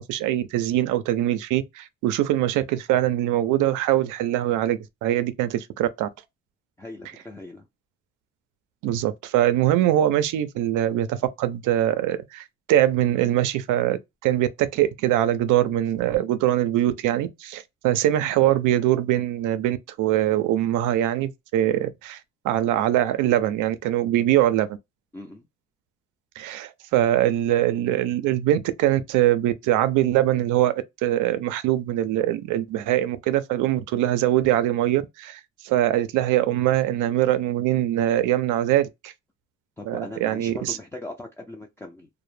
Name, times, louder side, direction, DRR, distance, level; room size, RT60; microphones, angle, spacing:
voice 1, 0.0-6.1 8.8-22.2 22.4-24.7 26.4-30.7 31.0-39.1 39.9-40.8, right 13 dB, 90° right, 0.5 m, -23 dB
voice 2, 6.8-7.7 25.1-25.5 39.8-42.1, left 2 dB, 10° left, 0.4 m, -39 dB
2.1 x 2.0 x 3.1 m
cardioid pair, 90°, 30 cm